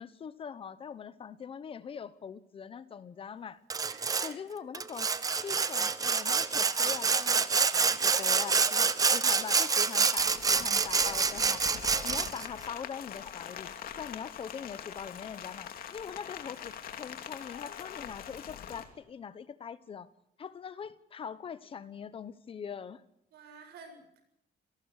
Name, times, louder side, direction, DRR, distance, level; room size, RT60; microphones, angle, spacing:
voice 1, 0.0-3.6 4.2-11.6 12.0-13.7 14.0-20.1 20.4-23.0, left 7 dB, 35° left, 15 dB, 1.1 m, -42 dB
Sawing, 3.7-4.3 4.7-12.5, right 5 dB, 20° right, 0.9 m, -27 dB
voice 2, 3.8-4.7 7.8-8.1 23.3-24.2, right 4 dB, 75° right, 7 dB, 7.7 m, -53 dB
Rain, 10.2-18.8, left 9 dB, 60° left, 2.9 m, -43 dB
27.5 x 18.5 x 6.6 m, 0.76 s
cardioid pair, 180°, 17 cm